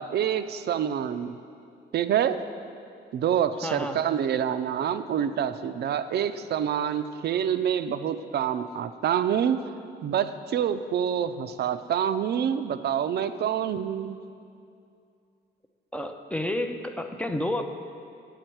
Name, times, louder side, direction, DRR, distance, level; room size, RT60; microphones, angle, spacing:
voice 1, 0.0-1.4 1.9-2.4 3.1-9.6 10.0-14.2, right 9 dB, 55° right, 11 dB, 0.4 m, -27 dB
voice 2, 3.6-4.0 15.9-17.6, left 1 dB, 5° left, 6 dB, 0.5 m, -30 dB
8.9 x 7.2 x 4.5 m, 2.4 s
cardioid pair, 90°, 20 cm